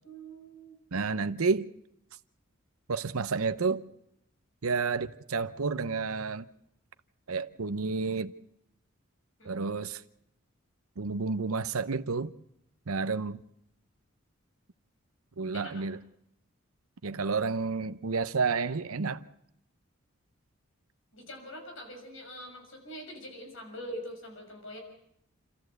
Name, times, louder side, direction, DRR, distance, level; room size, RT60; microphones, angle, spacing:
voice 1, 0.0-0.8 9.4-9.7 15.5-15.8 21.1-24.8, equal, 70° left, 6.5 m, -44 dB
voice 2, 0.9-1.7 2.9-3.8 4.6-6.5 7.3-8.3 9.4-10.0 11.0-12.3 12.9-13.4 15.4-16.0 17.0-19.2, right 4 dB, 90° right, 0.8 m, -30 dB
29.0 x 13.5 x 8.0 m
head